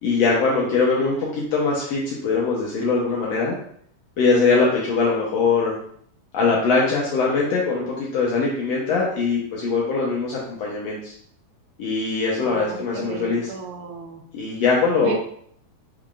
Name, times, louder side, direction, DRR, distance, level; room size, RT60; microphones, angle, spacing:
voice 1, 0.0-3.5 4.2-5.7 6.3-11.1 11.8-13.5 14.3-15.1, left 4 dB, 80° left, -4 dB, 1.5 m, -22 dB
voice 2, 12.4-14.2 15.0-15.1, right 5 dB, 90° right, 3 dB, 2.3 m, -33 dB
5.6 x 3.7 x 2.4 m, 0.63 s
omnidirectional pair, 3.9 m